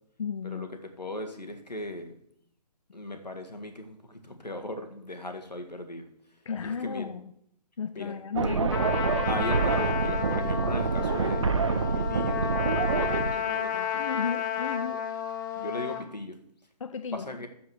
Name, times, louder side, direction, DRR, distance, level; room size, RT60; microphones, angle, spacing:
voice 1, 0.2-0.7 6.5-7.3 7.8-8.9 13.9-15.0 16.8-17.5, left 6 dB, 50° left, 10 dB, 0.4 m, -34 dB
voice 2, 1.0-2.1 2.9-6.1 6.6-7.1 7.9-8.2 9.3-14.0 15.6-16.4 17.1-17.5, left 1 dB, 80° left, 6 dB, 1.6 m, -38 dB
sound 1, 8.3-13.3, right 5 dB, 50° right, 0.5 m, -27 dB
Trumpet, 8.7-16.0, left 8 dB, 30° left, 0.9 m, -31 dB
7.2 x 6.0 x 6.2 m, 0.71 s
figure-of-eight pair, 140°, 21 cm